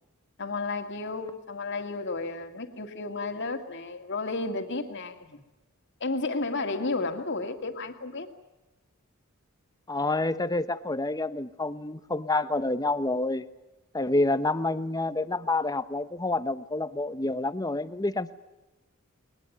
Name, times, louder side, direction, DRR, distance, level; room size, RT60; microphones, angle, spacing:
voice 1, 0.4-5.4 6.0-8.3, left 3 dB, 60° left, 2.3 m, -32 dB
voice 2, 9.9-13.4 13.9-18.3, left 2 dB, 20° left, 1.0 m, -28 dB
21.0 x 20.0 x 9.3 m
head